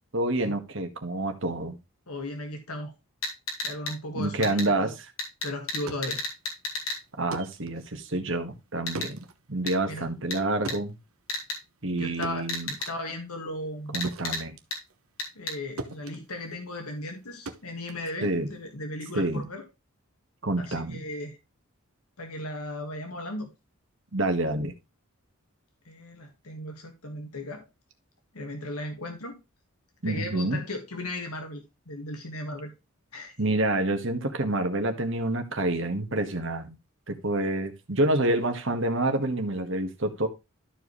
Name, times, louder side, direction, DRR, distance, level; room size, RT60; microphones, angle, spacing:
voice 1, 0.1-1.8 4.1-4.9 7.2-9.2 9.5-11.0 11.8-12.7 13.9-14.5 18.2-18.5 19.1-19.4 20.4-21.0 24.1-24.7 30.0-30.6 33.4-36.8 37.1-40.3, right 2 dB, 55° right, 1.6 m, -28 dB
voice 2, 2.1-2.9 3.6-5.0 5.4-6.2 9.9-10.1 11.9-12.4 12.9-14.0 15.4-19.6 20.6-21.4 22.2-23.5 25.9-27.6 28.3-29.4 30.0-32.7 33.1-33.3, left 1 dB, 85° left, 1.9 m, -36 dB
sound 1, 3.2-3.9 4.4-4.7 5.2-7.0 8.9-9.1 9.7-9.8 10.3-10.4 10.7-10.8 11.3-11.6 12.5-12.9 13.9-14.4 14.7-14.8 15.2-15.5, left 2 dB, 70° left, 3.2 m, -32 dB
sound 2, 5.6-15.5 15.8-18.7, right 3 dB, 75° right, 1.1 m, -43 dB
13.0 x 4.7 x 3.2 m
head